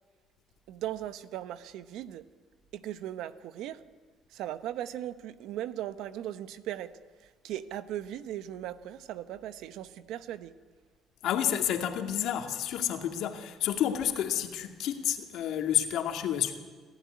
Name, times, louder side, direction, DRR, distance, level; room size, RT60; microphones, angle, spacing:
voice 1, 0.7-2.2 2.7-3.8 4.3-6.9 7.2-10.5, right 12 dB, 80° right, 1.0 m, -38 dB
voice 2, 11.2-16.6, left 10 dB, 75° left, 2.2 m, -30 dB
28.0 x 13.5 x 9.7 m
cardioid pair, 90°, 0 cm